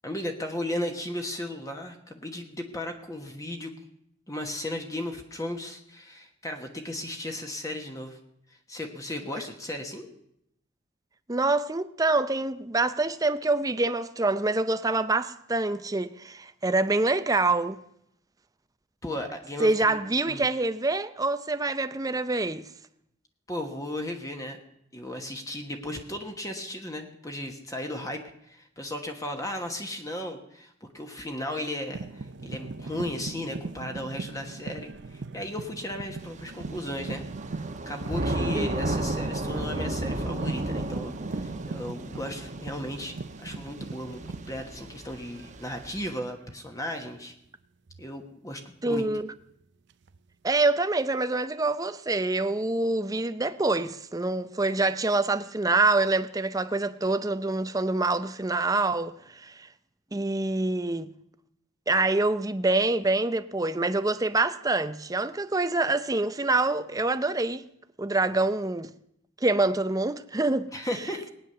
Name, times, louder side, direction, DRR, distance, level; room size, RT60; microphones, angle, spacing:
voice 1, 0.0-3.7 4.3-8.2 8.7-10.1 19.0-20.0 20.3-20.5 23.5-24.6 24.9-37.2 37.9-44.2 44.5-47.3 48.0-49.1 70.7-71.3, left 1 dB, 15° left, 1.3 m, -35 dB
voice 2, 11.3-17.8 19.6-22.7 38.5-38.8 48.8-49.3 50.4-59.7 60.1-61.1 61.9-67.6 68.0-68.9 69.4-70.7, right 2 dB, 20° right, 0.6 m, -26 dB
sound 1, 31.9-45.4 45.7-46.1 47.9-48.1 49.9-50.5, right 3 dB, 60° right, 0.6 m, -40 dB
Thunder / Rain, 36.2-46.2, right 2 dB, 35° right, 1.1 m, -34 dB
19.5 x 9.6 x 6.7 m
head